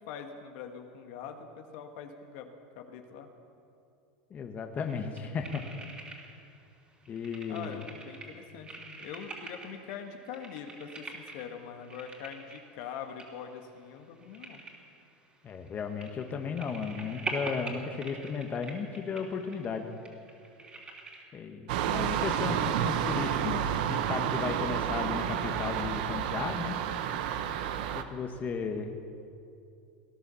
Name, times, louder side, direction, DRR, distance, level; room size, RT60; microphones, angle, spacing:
voice 1, 0.0-3.3 7.5-14.6, left 7 dB, 65° left, 5 dB, 1.6 m, -43 dB
voice 2, 4.3-5.6 7.1-7.8 15.4-19.9 21.3-26.8 27.9-29.0, left 5 dB, 30° left, 5 dB, 1.3 m, -35 dB
sound 1, 4.8-6.6 6.8-21.2, right 3 dB, 20° right, 3.0 m, -44 dB
sound 2, 21.7-28.0, right 9 dB, 70° right, 1.0 m, -30 dB
19.0 x 11.0 x 7.0 m, 2.5 s
supercardioid pair, 115°, 5 cm